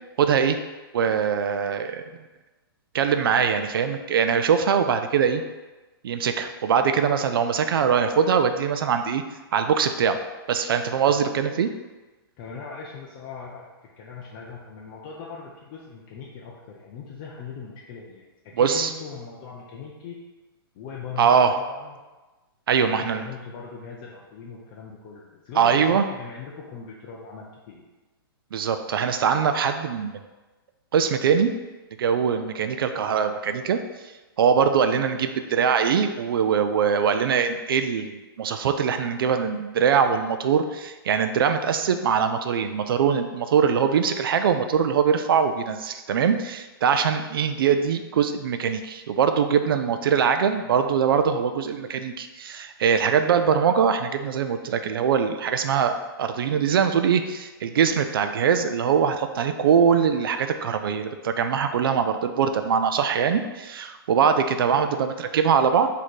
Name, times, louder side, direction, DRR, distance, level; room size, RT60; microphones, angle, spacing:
voice 1, 0.2-0.6 0.9-2.0 2.9-5.4 6.0-9.2 9.5-10.2 10.5-11.7 18.6-18.9 21.2-21.6 22.7-23.2 25.6-26.1 28.5-30.2 30.9-31.5 32.0-33.8 34.4-65.9, right 7 dB, 65° right, 8 dB, 0.4 m, -22 dB
voice 2, 12.4-13.7 14.0-20.2 20.7-22.0 22.7-27.8, left 5 dB, 25° left, -3 dB, 0.4 m, -40 dB
4.1 x 2.7 x 4.7 m, 1.2 s
hypercardioid pair, 165°, 13 cm